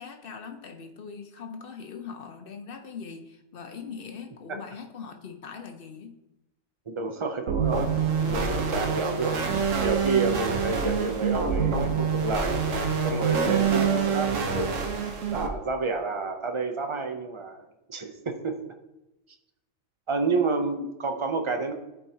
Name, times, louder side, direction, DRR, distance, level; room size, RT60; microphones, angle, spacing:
voice 1, 0.0-6.1, left 6 dB, 50° left, 5 dB, 0.8 m, -41 dB
voice 2, 6.9-7.9 8.3-9.4 9.8-12.6 13.0-14.9 15.3-17.6 17.9-18.7 20.1-21.7, right 3 dB, 35° right, 5 dB, 0.5 m, -29 dB
sound 1, 7.5-15.5, right 6 dB, 65° right, 1.2 m, -26 dB
12.0 x 4.6 x 2.8 m, 0.95 s
omnidirectional pair, 1.5 m